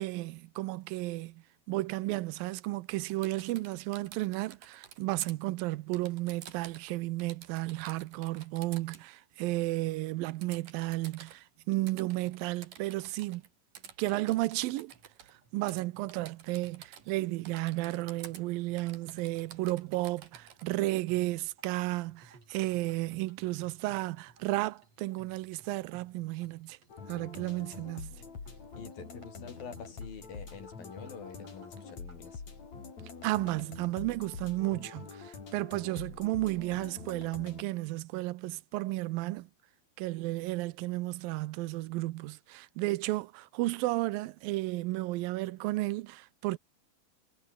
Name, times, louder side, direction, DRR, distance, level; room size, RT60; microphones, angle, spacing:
voice 1, 0.0-13.4 14.0-14.9 15.5-26.8 27.1-28.1 33.2-39.5 40.0-46.6, right 19 dB, 85° right, 2.4 m, -33 dB
Typing, 3.1-5.3 5.9-6.9 7.2-9.0 10.4-11.4 11.9-13.5 13.7-15.3 15.7-15.8 16.1-17.2 17.4-18.4 18.8-20.7, right 9 dB, 70° right, 3.9 m, -51 dB
sound 1, 14.9-32.4, right 3 dB, 45° right, 7.3 m, -62 dB
sound 2, 26.9-37.6, left 5 dB, 50° left, 5.8 m, -46 dB
voice 2, 28.8-32.4, left 6 dB, 75° left, 6.2 m, -46 dB
omnidirectional pair, 4.1 m